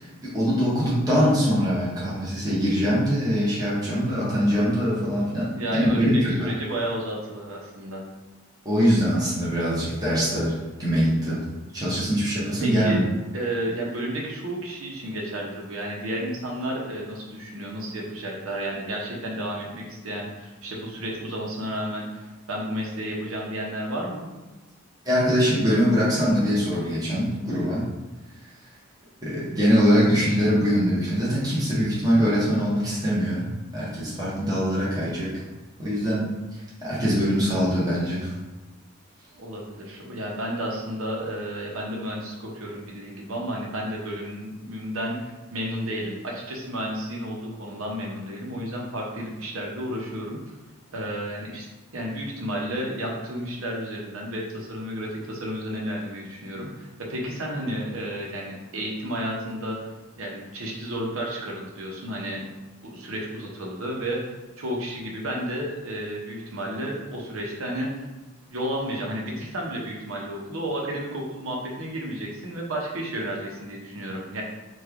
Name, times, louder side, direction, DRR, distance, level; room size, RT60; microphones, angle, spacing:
voice 1, 0.0-6.5 8.6-10.5 10.8-11.4 11.7-13.0 25.0-27.8 29.2-35.3 35.8-38.3, equal, 20° right, -8 dB, 0.9 m, -23 dB
voice 2, 5.4-8.0 12.6-13.0 13.3-24.3 39.3-50.4 50.9-51.7 51.9-62.4 62.8-64.2 64.6-67.9 68.5-74.4, equal, 90° right, -1 dB, 0.8 m, -32 dB
3.1 x 2.3 x 3.5 m, 1.1 s
head